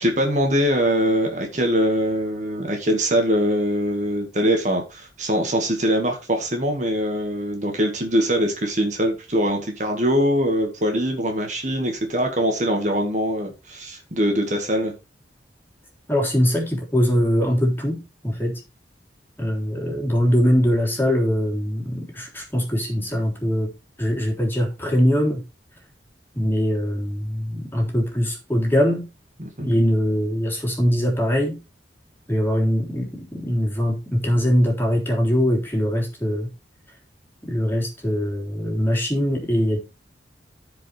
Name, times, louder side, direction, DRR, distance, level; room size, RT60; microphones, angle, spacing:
voice 1, 0.0-14.9 29.4-29.7, equal, 40° right, 1.9 m, -22 dB
voice 2, 16.1-18.6 19.4-23.7 24.0-25.4 26.3-29.1 29.6-31.6 32.3-36.5 37.4-39.8, equal, 10° left, 3.5 m, -22 dB
15.0 x 5.2 x 3.4 m
head